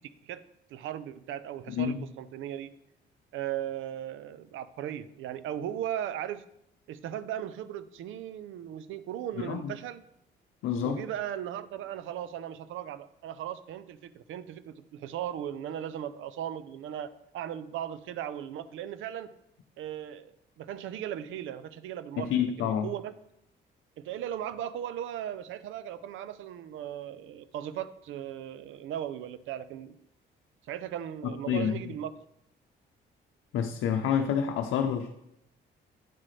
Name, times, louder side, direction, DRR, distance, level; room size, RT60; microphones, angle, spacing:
voice 1, 0.7-2.7 3.3-6.4 6.9-10.0 10.8-19.3 19.8-23.1 24.0-30.0 30.7-32.1, right 10 dB, 80° right, 14 dB, 0.5 m, -37 dB
voice 2, 1.7-2.0 9.4-9.7 10.6-11.0 22.2-22.9 31.2-31.8 33.5-35.1, left 8 dB, 85° left, 3 dB, 0.7 m, -28 dB
9.2 x 7.5 x 3.3 m, 0.80 s
cardioid pair, 90°, 20 cm